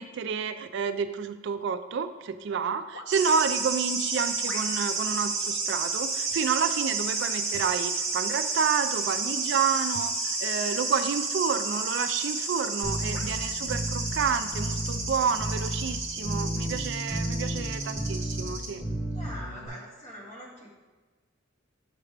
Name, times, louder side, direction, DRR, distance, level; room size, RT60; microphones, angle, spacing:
voice 1, 0.0-18.8, right 6 dB, 60° right, 10 dB, 0.3 m, -29 dB
sound 1, 2.9-3.4 4.4-5.0 5.8-6.0 7.0-7.4 8.2-8.4 10.3-10.5 11.1-11.3 12.1-12.2 13.1-13.4 14.2-14.4, left 3 dB, 65° left, 0.7 m, -45 dB
sound 2, 3.1-18.7, right 3 dB, 15° right, 1.4 m, -31 dB
sound 3, 12.8-19.7, right 1 dB, 5° left, 0.8 m, -33 dB
voice 2, 19.1-20.7, equal, 35° left, -5 dB, 1.9 m, -43 dB
7.3 x 5.9 x 3.3 m, 1.3 s
head